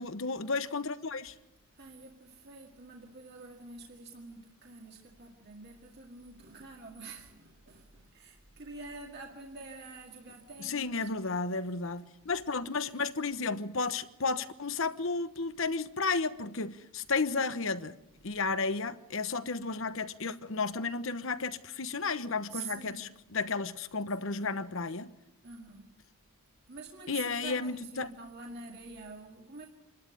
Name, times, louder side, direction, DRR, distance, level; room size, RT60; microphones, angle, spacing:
voice 1, 0.0-1.3 10.6-18.0 18.2-25.1 27.1-28.1, left 4 dB, 60° left, 1.0 m, -33 dB
voice 2, 1.7-11.1 22.5-23.1 25.4-25.9 26.7-29.7, right 3 dB, 50° right, 2.0 m, -47 dB
27.0 x 12.5 x 9.1 m
head